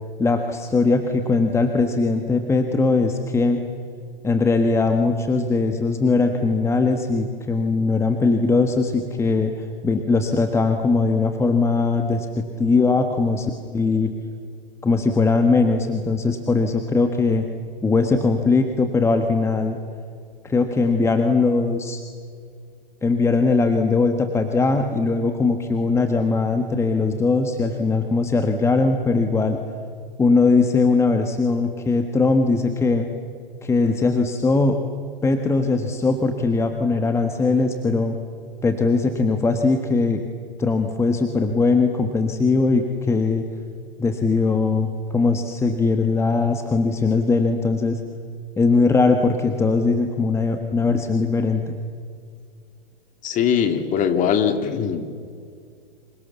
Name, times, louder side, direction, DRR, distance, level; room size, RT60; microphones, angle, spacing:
voice 1, 0.2-3.6 4.2-14.1 14.8-17.5 17.8-19.8 20.4-22.0 23.0-29.6 30.2-33.1 33.6-34.8 35.2-38.2 38.6-40.2 40.6-43.5 44.0-48.0 48.6-51.8, left 3 dB, 10° left, 6 dB, 1.5 m, -20 dB
voice 2, 53.2-55.1, left 7 dB, 25° left, 8 dB, 2.7 m, -21 dB
30.0 x 27.0 x 7.1 m, 2.3 s
hypercardioid pair, 125°, 29 cm